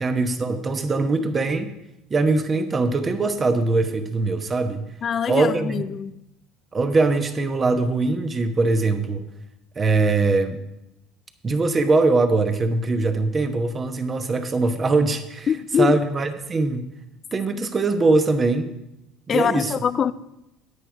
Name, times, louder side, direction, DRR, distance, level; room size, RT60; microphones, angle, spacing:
voice 1, 0.0-1.7 2.1-4.9 5.3-5.8 6.7-9.3 9.8-10.6 11.4-15.5 15.8-16.9 17.3-18.7 19.3-19.7, right 3 dB, 30° right, 1.0 m, -22 dB
voice 2, 5.0-6.2 15.5-16.0 17.6-17.7 19.3-20.1, left 8 dB, 40° left, 0.4 m, -23 dB
9.9 x 9.1 x 4.8 m
supercardioid pair, 105°, 0 cm